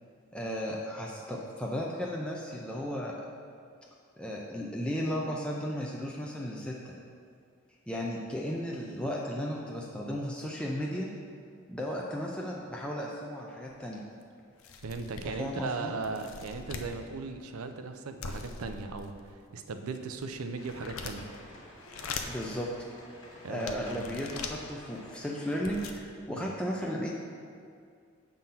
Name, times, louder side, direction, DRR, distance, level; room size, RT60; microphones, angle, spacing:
voice 1, 0.3-3.2 4.2-6.9 7.9-11.1 11.7-14.0 15.2-15.9 22.3-22.7 23.5-27.1, equal, 5° left, -3 dB, 0.4 m, -35 dB
sound 1, 13.7-13.8 14.2-14.3 14.6-15.5 16.0-16.9 18.2-19.3 19.9-21.4 21.8-22.5 23.1-23.2 23.7-24.6 25.2-25.3 25.5-26.0, left 5 dB, 75° left, 0.5 m, -41 dB
voice 2, 14.8-21.3 23.4-24.1 26.3-26.5, right 4 dB, 90° right, 7 dB, 0.5 m, -38 dB
sound 2, 20.6-25.9, left 1 dB, 55° left, 1.4 m, -51 dB
7.5 x 3.8 x 5.6 m, 2.2 s
head